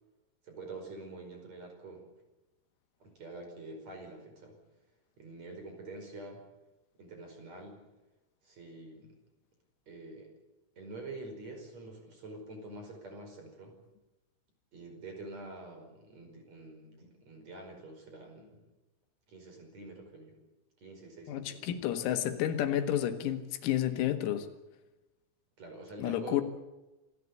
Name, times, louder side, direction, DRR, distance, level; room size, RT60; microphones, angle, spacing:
voice 1, 0.4-2.1 3.0-4.6 5.2-6.4 7.0-7.8 8.4-9.1 9.9-10.3 10.8-13.7 14.7-18.7 19.3-20.4 20.8-21.7 25.6-26.4, right 2 dB, 35° right, 5.9 m, -46 dB
voice 2, 21.3-24.5 26.0-26.4, left 11 dB, 85° left, 4.4 m, -31 dB
27.5 x 16.0 x 8.5 m
omnidirectional pair, 6.0 m